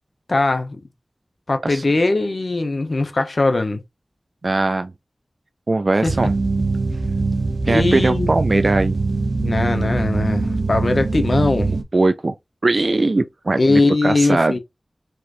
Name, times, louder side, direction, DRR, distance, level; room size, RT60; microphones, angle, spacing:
voice 1, 0.3-0.8 1.5-3.8 6.0-6.2 7.7-8.3 9.4-11.7 13.6-14.6, left 2 dB, 60° left, 0.8 m, -20 dB
voice 2, 4.4-4.9 5.7-6.4 7.6-9.0 11.9-12.3 12.6-14.5, right 2 dB, 55° right, 0.3 m, -20 dB
sound 1, 6.1-11.8, right 3 dB, 90° right, 0.7 m, -22 dB
4.4 x 3.0 x 2.5 m
wide cardioid pair, 60°, 0 cm